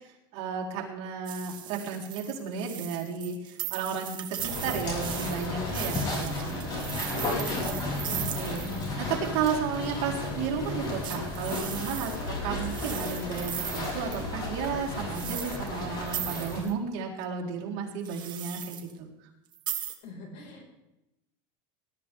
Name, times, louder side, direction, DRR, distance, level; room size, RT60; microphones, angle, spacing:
voice 1, 0.0-7.0 7.4-7.5 8.0-8.7 9.0-19.1, right 6 dB, 50° right, -3 dB, 3.8 m, -33 dB
sound 1, 1.2-9.0 11.0-14.2 15.1-15.8 16.1-16.7 18.0-18.9 19.5-19.9, right 11 dB, 35° right, 1.3 m, -38 dB
sound 2, 4.4-16.6, left 2 dB, 30° left, 4.7 m, -33 dB
voice 2, 7.1-8.4 20.0-20.7, left 3 dB, 55° left, 1 dB, 4.9 m, -41 dB
20.0 x 12.5 x 3.6 m, 0.91 s
supercardioid pair, 150°, 13 cm